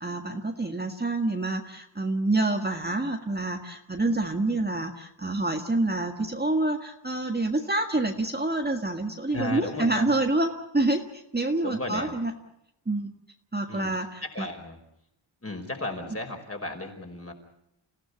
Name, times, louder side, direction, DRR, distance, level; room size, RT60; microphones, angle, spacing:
voice 1, 0.0-12.3 12.9-13.2 13.5-14.5, right 2 dB, 20° right, 4 dB, 1.7 m, -27 dB
voice 2, 9.3-10.1 11.6-12.1 13.7-13.9 14.2-14.8 15.4-17.3, left 2 dB, 30° left, 3 dB, 5.1 m, -34 dB
29.0 x 16.5 x 8.4 m, 0.81 s
wide cardioid pair, 100°, 47 cm